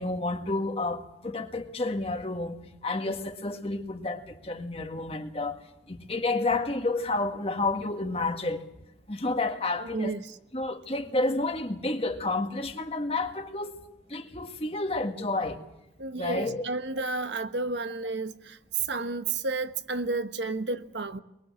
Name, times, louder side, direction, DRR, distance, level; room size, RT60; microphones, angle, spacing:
voice 1, 0.0-2.6 2.8-5.6 5.9-8.6 9.1-10.2 10.5-13.7 14.1-15.6 16.2-16.6, left 2 dB, 35° left, 1.9 m, -30 dB
voice 2, 16.0-18.6 18.9-21.2, right 3 dB, 85° right, 1.3 m, -31 dB
23.0 x 22.5 x 7.6 m
head